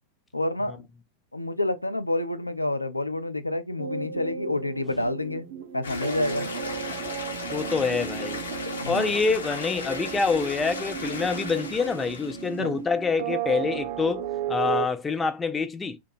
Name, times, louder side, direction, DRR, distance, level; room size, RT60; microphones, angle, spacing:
voice 1, 0.3-0.9 1.3-5.5 5.7-6.5 8.8-9.1 12.6-12.7, left 1 dB, 85° left, 0.3 m, -28 dB
sound 1, 3.8-14.9, right 8 dB, 50° right, 0.4 m, -34 dB
sound 2, 5.8-12.7, left 4 dB, 70° left, 0.7 m, -36 dB
voice 2, 7.5-8.4 8.8-16.0, left 4 dB, 15° left, 0.4 m, -26 dB
2.4 x 2.2 x 2.6 m
figure-of-eight pair, 90°, 0 cm